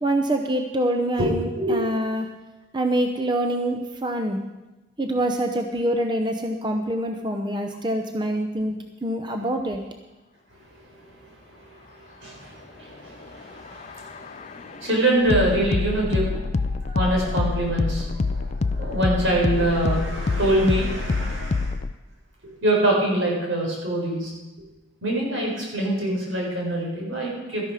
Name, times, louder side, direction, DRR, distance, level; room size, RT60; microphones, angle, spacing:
voice 1, 0.0-2.3 2.7-4.4 5.0-9.8, right 1 dB, 25° right, 4 dB, 0.7 m, -25 dB
voice 2, 1.2-1.8 10.5-21.7 22.6-24.3 25.0-27.7, right 1 dB, 85° right, -2 dB, 4.6 m, -25 dB
sound 1, 13.2-21.9, left 3 dB, 35° left, 0.3 m, -26 dB
13.0 x 11.5 x 4.9 m, 1.1 s
head